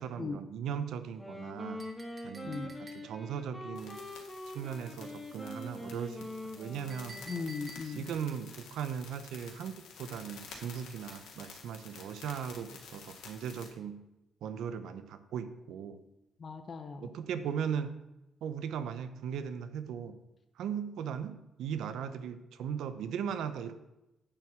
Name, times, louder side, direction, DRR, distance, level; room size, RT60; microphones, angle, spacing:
voice 1, 0.0-1.8 2.2-4.0 4.5-6.3 6.5-7.2 7.8-14.0 14.4-16.0 17.0-17.9 18.4-20.2 20.6-23.7, right 8 dB, 80° right, 11 dB, 0.7 m, -38 dB
Wind instrument woodwind instrument, 1.1-7.6, left 1 dB, 5° left, 1.5 m, -44 dB
Chink clink, 1.8-3.4 6.9-8.2, right 1 dB, 30° right, 1.7 m, -51 dB
voice 2, 2.4-2.8 7.3-8.1 16.4-17.0, left 4 dB, 40° left, 6 dB, 0.7 m, -38 dB
sound 1, 3.8-13.7, left 5 dB, 80° left, 2.0 m, -51 dB
8.9 x 4.6 x 7.3 m, 0.94 s
cardioid pair, 90°, 0 cm